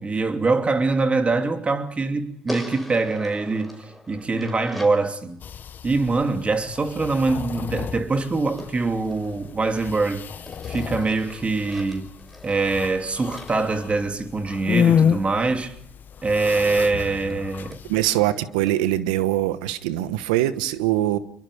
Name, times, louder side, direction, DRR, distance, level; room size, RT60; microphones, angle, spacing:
voice 1, 0.0-3.8 4.1-5.4 5.8-10.2 10.7-12.1 12.4-15.7 16.2-17.8, right 3 dB, 30° right, 2.9 m, -23 dB
sound 1, 2.5-5.1 8.6-10.0 10.5-14.6 16.5-16.6 16.9-17.0 17.3-17.4 17.7-17.8 18.2-18.3 18.7-18.8, left 1 dB, ahead, 5.2 m, -41 dB
sound 2, 5.4-18.1, left 7 dB, 50° left, 0.9 m, -30 dB
voice 2, 17.9-21.2, right 14 dB, 85° right, 1.2 m, -22 dB
26.5 x 23.0 x 5.1 m
supercardioid pair, 65°, 4 cm